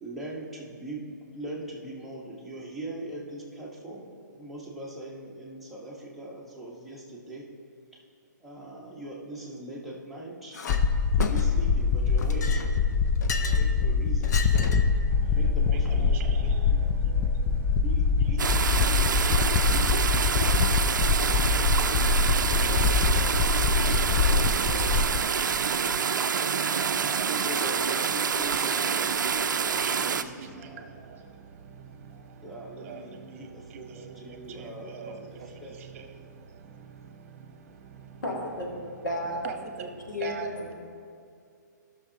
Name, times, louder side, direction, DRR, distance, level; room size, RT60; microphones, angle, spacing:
voice 1, 0.0-7.5 7.9-8.0 8.4-10.6 11.1-12.7 13.4-14.7 15.3-16.4 16.7-16.8 17.8-20.4 21.6-24.6 26.6-31.0 32.1-35.8, right 1 dB, ahead, -5 dB, 1.3 m, -41 dB
Chink clink, 10.5-10.8 11.2-11.7 12.2-13.7 14.2-15.0, left 5 dB, 65° left, 0.7 m, -35 dB
sound 1, 10.7-25.2, left 5 dB, 20° left, 0.3 m, -24 dB
voice 2, 15.7-17.8 18.2-21.9 22.2-27.5 27.8-32.5 32.8-35.3 35.5-38.2 39.4-40.5, right 6 dB, 45° right, 6 dB, 1.0 m, -43 dB
sound 2, 18.4-30.2, right 6 dB, 80° right, 0.4 m, -27 dB
voice 3, 38.2-38.7 39.0-39.4 40.1-40.7, left 1 dB, 85° left, -3 dB, 2.3 m, -32 dB
15.5 x 6.3 x 2.9 m, 2.3 s
hypercardioid pair, 150°, 10 cm